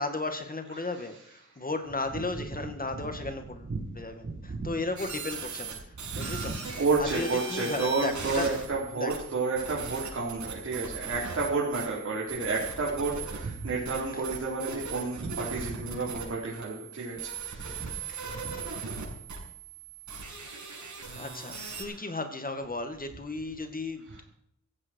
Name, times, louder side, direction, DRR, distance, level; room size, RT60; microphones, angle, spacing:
voice 1, 0.0-3.7 4.0-5.8 6.2-6.6 7.0-8.5 9.0-9.1 9.9-10.0 15.9-16.0 18.1-18.8 21.2-24.2, left 2 dB, 30° left, 7 dB, 2.2 m, -35 dB
voice 2, 0.7-1.4 2.6-2.7 3.4-3.8 4.5-4.7 6.0-18.4 21.8-22.0 24.1-24.2, right 3 dB, 55° right, -5 dB, 4.6 m, -31 dB
sound 1, 5.0-21.8, right 5 dB, 75° right, 6.8 m, -39 dB
16.5 x 15.0 x 4.8 m, 0.73 s
wide cardioid pair, 130°, 29 cm